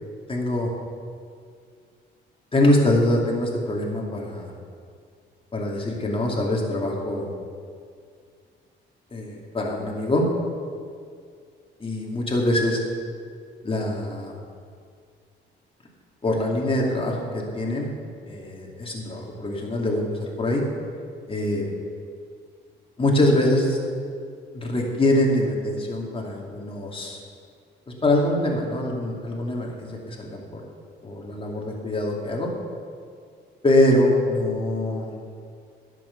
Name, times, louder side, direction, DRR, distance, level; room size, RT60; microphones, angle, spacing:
voice 1, 0.3-0.7 2.5-4.5 5.5-7.3 9.1-10.2 11.8-12.8 13.6-14.3 16.2-17.9 18.3-20.6 21.3-21.6 23.0-23.8 24.5-27.2 27.9-30.6 31.0-32.5 33.6-35.1, left 1 dB, 25° left, -1 dB, 2.6 m, -24 dB
11.0 x 7.8 x 7.1 m, 2.2 s
cardioid pair, 90°, 20 cm